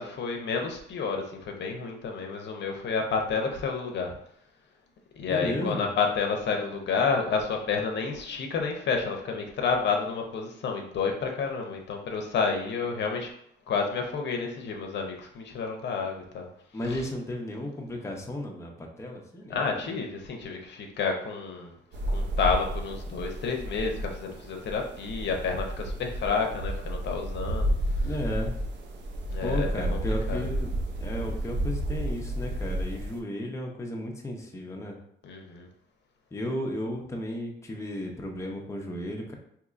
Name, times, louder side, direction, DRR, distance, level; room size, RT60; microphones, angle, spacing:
voice 1, 0.0-4.1 5.2-13.3 13.7-16.5 16.9-17.0 19.5-21.7 22.1-27.7 28.0-28.1 29.3-30.0 30.3-30.4 35.2-35.7, left 5 dB, 60° left, 2 dB, 0.6 m, -30 dB
voice 2, 5.3-5.9 16.7-19.9 28.0-28.6 29.4-35.0 36.3-39.3, left 1 dB, 15° left, 0 dB, 0.6 m, -34 dB
sound 1, 21.9-33.2, right 1 dB, 65° right, 0.6 m, -31 dB
3.7 x 2.9 x 2.4 m, 0.70 s
cardioid pair, 90°, 20 cm